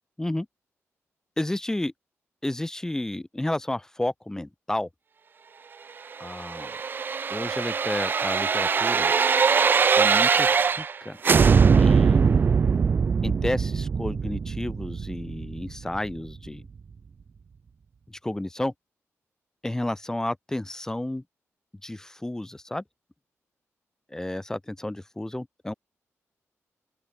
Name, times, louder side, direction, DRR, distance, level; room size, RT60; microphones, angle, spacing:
voice 1, 1.4-1.9 2.4-4.9 6.2-6.8 7.3-9.1 10.0-11.2 11.8-12.5 13.2-16.7 18.2-18.7 19.6-21.2 21.8-22.8 24.1-25.7, left 1 dB, 10° left, 0.8 m, -31 dB
sound 1, 6.2-11.0 11.2-16.1 16.5-16.6, right 5 dB, 40° right, 0.4 m, -22 dB
open air
wide cardioid pair, 115°, 5 cm